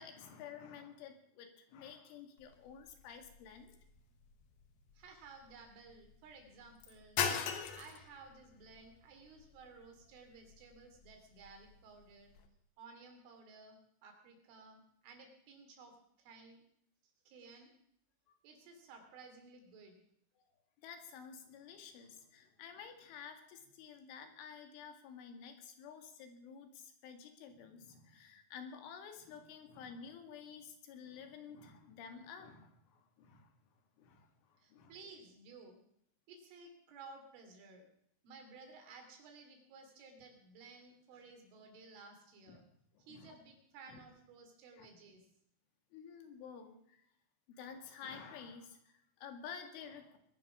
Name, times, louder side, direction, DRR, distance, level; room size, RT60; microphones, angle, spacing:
voice 1, 0.0-3.7 20.8-33.5 34.0-35.0 42.5-42.6 42.9-43.4 43.9-44.0 44.7-44.9 45.9-47.0 47.5-50.2, left 6 dB, 90° left, 6 dB, 4.4 m, -51 dB
sound 1, 2.4-12.5, left 7 dB, 65° left, 2.7 m, -44 dB
voice 2, 5.0-7.2 7.7-12.3 12.8-13.8 14.0-16.6 17.3-17.7 18.4-20.0 34.6-35.8 36.3-37.9 38.2-42.6 43.1-45.2, right 4 dB, 85° right, 3 dB, 5.4 m, -56 dB
21.5 x 10.5 x 6.1 m, 0.71 s
omnidirectional pair, 5.4 m